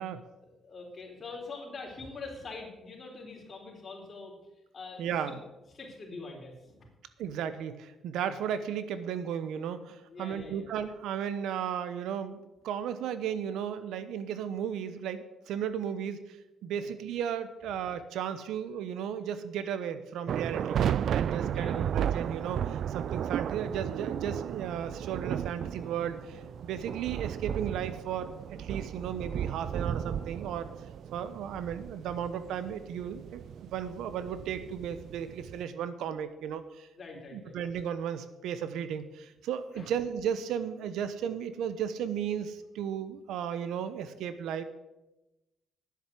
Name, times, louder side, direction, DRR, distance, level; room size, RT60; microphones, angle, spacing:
voice 1, 0.4-4.3 4.7-5.1 5.7-6.9 10.1-10.7 16.7-16.9 21.5-22.0 36.9-37.5 39.7-39.9, left 3 dB, 40° left, 0 dB, 4.0 m, -44 dB
voice 2, 5.0-5.4 7.2-12.4 12.6-16.2 16.6-28.3 28.6-30.7 31.1-36.9 37.3-44.6, right 8 dB, 85° right, 12 dB, 0.9 m, -35 dB
sound 1, 20.3-35.6, right 9 dB, 65° right, 0.3 m, -34 dB
10.5 x 7.7 x 8.2 m, 1.0 s
cardioid pair, 90°, 0 cm